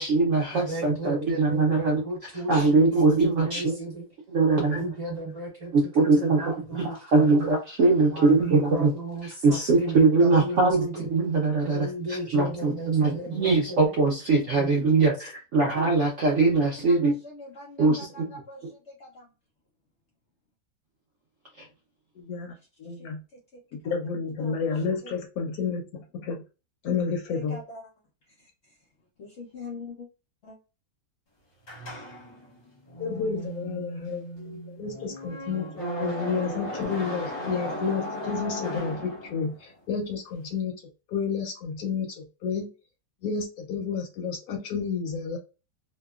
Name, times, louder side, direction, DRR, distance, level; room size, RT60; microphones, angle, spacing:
voice 1, 0.0-2.0 2.5-3.7 4.3-4.8 5.7-8.9 9.4-10.9 11.1-17.1 17.8-18.3 21.6-21.7, right 3 dB, 70° right, 0.7 m, -22 dB
voice 2, 0.5-4.0 4.5-7.4 8.0-11.1 11.6-13.9 14.5-14.7, right 1 dB, 25° right, 1.1 m, -35 dB
voice 3, 16.8-19.3 22.5-23.9 24.4-25.1 27.3-27.9 28.3-28.9 29.2-30.1 30.4-30.6, left 2 dB, 90° left, 0.5 m, -45 dB
voice 4, 22.2-22.5 22.8-23.2 23.7-26.4 26.8-27.6 33.0-35.7 36.0-40.7 41.1-42.7 43.2-45.4, left 5 dB, 70° left, 1.0 m, -30 dB
sound 1, 31.6-39.7, equal, 40° left, 0.7 m, -36 dB
2.8 x 2.2 x 2.3 m
omnidirectional pair, 1.8 m